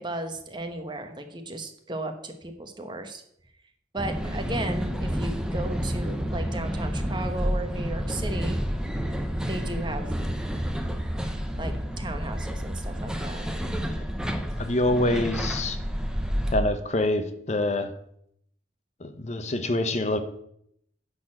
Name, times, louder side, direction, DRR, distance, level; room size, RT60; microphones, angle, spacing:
voice 1, 0.0-3.2 3.9-8.6 9.5-10.2 11.6-13.5, right 2 dB, 25° right, 6 dB, 1.1 m, -35 dB
sound 1, 4.0-16.6, equal, 5° right, 0.8 m, -29 dB
voice 2, 14.6-15.8 16.5-17.9 19.0-20.2, left 1 dB, 40° left, 9 dB, 0.8 m, -26 dB
10.5 x 4.0 x 7.7 m, 0.70 s
head